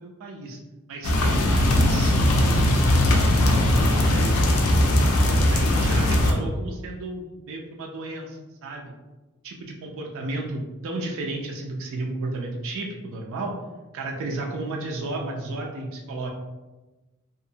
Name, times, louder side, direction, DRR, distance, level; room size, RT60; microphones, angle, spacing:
voice 1, 0.0-0.6 0.9-2.2 3.6-3.8 4.9-5.0 5.5-8.9 9.4-13.5 13.9-16.3, right 2 dB, 60° right, 1 dB, 0.3 m, -33 dB
sound 1, 1.0-6.3, left 1 dB, 75° left, 0.4 m, -19 dB
2.7 x 2.0 x 2.6 m, 1.2 s
head